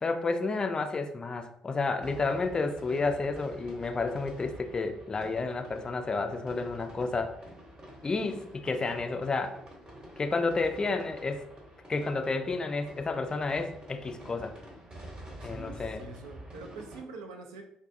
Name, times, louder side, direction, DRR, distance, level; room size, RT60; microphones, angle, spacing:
voice 1, 0.0-7.3 8.0-9.6 10.2-11.5 11.9-14.5 15.4-16.0, left 3 dB, 25° left, 6 dB, 0.3 m, -31 dB
sound 1, 2.0-17.0, right 1 dB, 30° right, 0.9 m, -48 dB
voice 2, 15.4-17.6, right 3 dB, 75° right, 3 dB, 0.3 m, -45 dB
2.5 x 2.3 x 2.5 m, 0.76 s
figure-of-eight pair, 45°, 3 cm